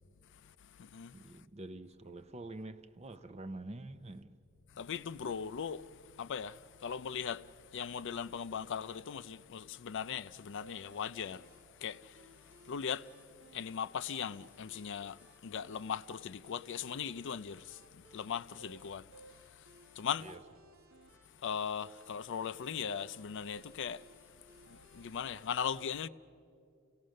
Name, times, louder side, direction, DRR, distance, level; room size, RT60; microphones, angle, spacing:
voice 1, 1.1-4.3 20.2-20.4, right 2 dB, 30° right, 0.7 m, -46 dB
voice 2, 4.8-5.8 6.2-6.6 6.8-7.4 7.7-11.4 11.8-12.0 12.7-13.1 13.5-15.2 15.4-17.8 18.1-19.0 20.0-20.3 21.4-24.0 24.9-26.1, left 7 dB, 60° left, 0.5 m, -38 dB
sound 1, 10.6-25.6, right 1 dB, 85° right, 1.8 m, -61 dB
29.0 x 17.5 x 6.4 m
head